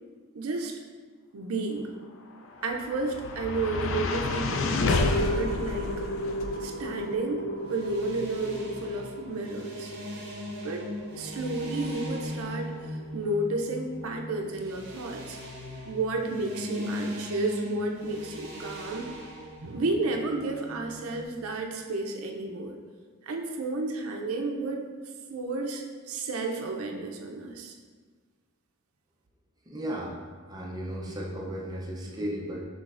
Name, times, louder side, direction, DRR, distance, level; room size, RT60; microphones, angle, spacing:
voice 1, 0.3-0.8 1.3-1.9 2.6-5.9 6.6-7.4 7.7-9.9 10.6-12.7 13.1-15.4 15.9-19.1 19.6-22.8 23.2-24.9 25.3-27.7, right 2 dB, 85° right, 2 dB, 0.5 m, -32 dB
sound 1, 2.3-14.6, left 2 dB, 65° left, 0.3 m, -32 dB
sound 2, 7.6-21.2, left 1 dB, 50° right, 0.8 m, -39 dB
voice 2, 29.7-30.2 30.5-32.6, equal, 20° right, -3 dB, 0.5 m, -35 dB
6.0 x 3.2 x 2.5 m, 1.5 s
head